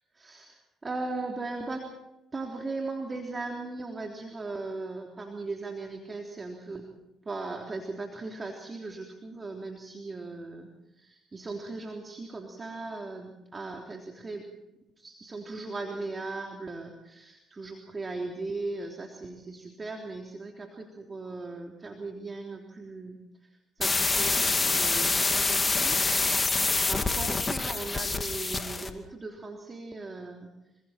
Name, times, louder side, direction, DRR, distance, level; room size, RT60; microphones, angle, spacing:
voice 1, 0.1-1.9 2.3-6.9 7.3-14.5 15.0-26.0 26.3-30.5, right 3 dB, 30° right, 2 dB, 3.5 m, -38 dB
sound 1, 23.8-28.9, left 3 dB, 30° left, 2.5 m, -26 dB
27.5 x 24.5 x 4.4 m, 0.93 s
hypercardioid pair, 55°, 0 cm